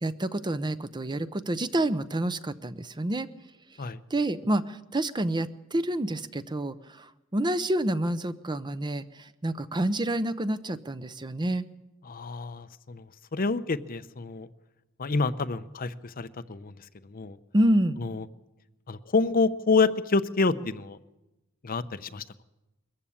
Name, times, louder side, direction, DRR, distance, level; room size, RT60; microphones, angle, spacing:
voice 1, 0.0-3.3 4.1-11.7 17.5-18.0, right 1 dB, 20° right, 13 dB, 0.6 m, -28 dB
voice 2, 12.1-13.0 13.3-14.5 15.0-16.7 17.1-17.4 18.0-18.2 18.9-21.0 21.6-22.4, left 4 dB, 45° left, 12 dB, 0.7 m, -28 dB
21.5 x 14.5 x 8.6 m, 0.98 s
head